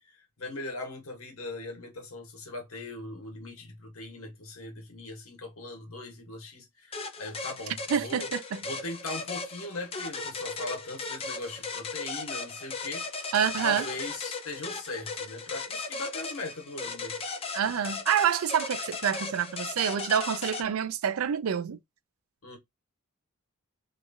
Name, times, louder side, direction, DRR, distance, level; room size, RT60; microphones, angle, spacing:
voice 1, 0.1-8.3 8.6-13.3 13.6-17.2 22.4-22.6, left 2 dB, 65° left, 1.2 m, -40 dB
sound 1, 6.9-20.6, left 4 dB, 25° left, 0.5 m, -37 dB
voice 2, 7.9-8.6 13.3-13.9 17.5-21.8, right 8 dB, 65° right, 0.4 m, -27 dB
2.8 x 2.4 x 2.6 m
head